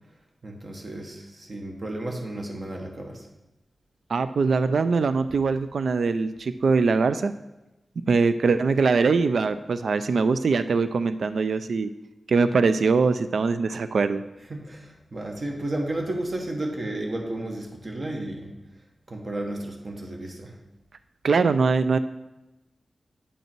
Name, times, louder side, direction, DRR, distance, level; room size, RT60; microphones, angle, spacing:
voice 1, 0.4-3.3 14.5-18.5 19.1-20.6, right 1 dB, 45° right, 2 dB, 1.3 m, -33 dB
voice 2, 4.1-7.3 8.1-11.9 12.3-14.2 21.2-22.0, right 4 dB, 80° right, 12 dB, 0.3 m, -22 dB
8.5 x 5.4 x 4.5 m, 0.99 s
wide cardioid pair, 110°, 0 cm